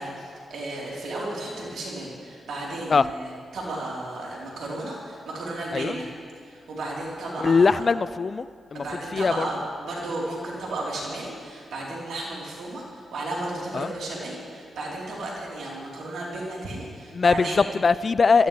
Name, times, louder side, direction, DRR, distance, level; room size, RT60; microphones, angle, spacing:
voice 1, 0.0-6.1 6.4-7.8 8.7-17.6, right 2 dB, 75° right, -5 dB, 4.1 m, -34 dB
voice 2, 7.4-8.8 9.1-9.5 13.7-13.9 17.1-18.5, left 4 dB, 50° left, 17 dB, 0.4 m, -21 dB
21.0 x 14.0 x 3.4 m, 2.1 s
hypercardioid pair, 40°, 0 cm